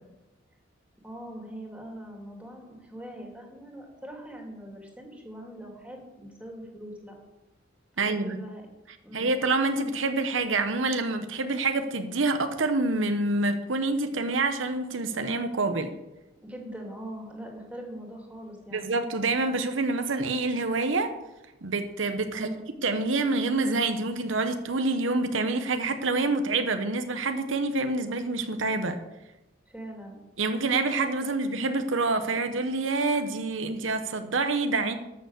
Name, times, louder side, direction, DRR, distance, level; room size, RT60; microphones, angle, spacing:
voice 1, 1.0-7.1 7.9-8.6 9.0-9.3 16.4-19.0 22.3-22.7 29.7-30.2, right 1 dB, 5° right, 0 dB, 2.8 m, -42 dB
voice 2, 8.0-8.4 9.1-15.9 18.7-21.1 21.6-22.5 22.8-29.0 30.4-35.0, right 3 dB, 85° right, 8 dB, 1.0 m, -27 dB
13.0 x 7.0 x 6.6 m, 0.97 s
head